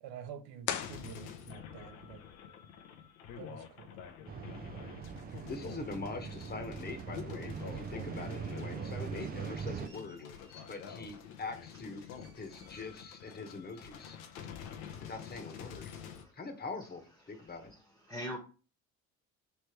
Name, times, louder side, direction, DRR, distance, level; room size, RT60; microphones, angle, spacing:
voice 1, 0.0-2.2 3.4-4.0, right 8 dB, 65° right, 0.8 m, -48 dB
sound 1, 0.6-1.8, left 9 dB, 50° left, 0.6 m, -39 dB
sound 2, 0.8-16.2, left 8 dB, 85° left, 0.8 m, -48 dB
sound 3, 4.3-9.9, right 7 dB, 25° right, 0.4 m, -41 dB
voice 2, 5.5-10.2 10.7-12.0 12.3-14.2 15.0-15.9 16.3-17.0 17.3-17.7, left 3 dB, 25° left, 1.1 m, -43 dB
voice 3, 12.0-12.9 14.8-15.1 15.9-16.3 17.3-17.8 18.1-18.4, equal, 5° left, 1.1 m, -47 dB
3.3 x 3.2 x 4.4 m
hypercardioid pair, 70°, 40 cm